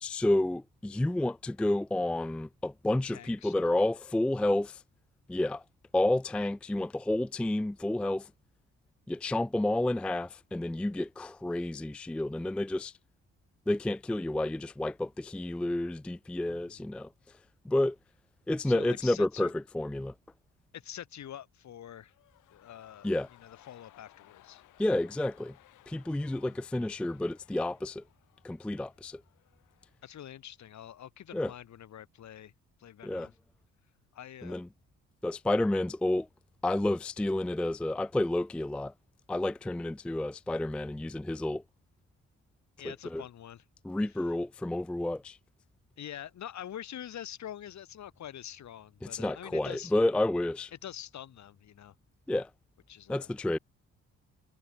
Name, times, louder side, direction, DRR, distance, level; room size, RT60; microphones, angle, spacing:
voice 1, 0.0-4.8 5.3-5.6 5.9-8.3 9.1-12.9 13.7-17.1 17.6-18.0 18.5-20.1 23.0-23.3 24.8-25.6 25.9-28.0 28.4-29.2 31.3-31.5 33.0-33.3 34.4-34.7 35.2-36.3 36.6-38.9 39.3-41.6 42.8-43.2 43.8-45.4 49.0-50.7 52.3-52.5 53.1-53.6, left 1 dB, 5° left, 0.3 m, -30 dB
voice 2, 3.1-3.7 16.5-16.8 18.6-19.5 20.7-22.1 22.5-23.1 23.4-24.6 26.2-26.5 30.0-32.5 32.8-33.3 34.1-34.6 42.8-43.6 46.0-49.9 50.7-51.9 52.9-53.3, left 10 dB, 65° left, 4.2 m, -45 dB
sound 1, 22.0-30.1 30.4-30.5, left 15 dB, 85° left, 4.6 m, -61 dB
cardioid pair, 90°, 30 cm